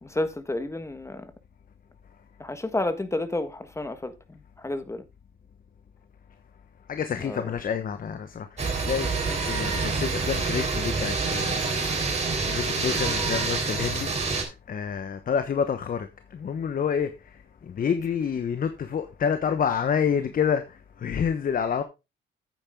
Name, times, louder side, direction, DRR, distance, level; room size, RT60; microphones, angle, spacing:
voice 1, 0.0-1.3 2.4-5.0 7.2-7.5 9.3-9.4 12.0-12.1, left 2 dB, 15° left, 1.4 m, -31 dB
voice 2, 6.9-9.1 9.4-11.6 12.4-21.8, left 7 dB, 45° left, 1.0 m, -28 dB
sound 1, 8.6-14.4, right 4 dB, 35° right, 3.3 m, -27 dB
9.0 x 8.8 x 3.6 m
cardioid pair, 90°, 20 cm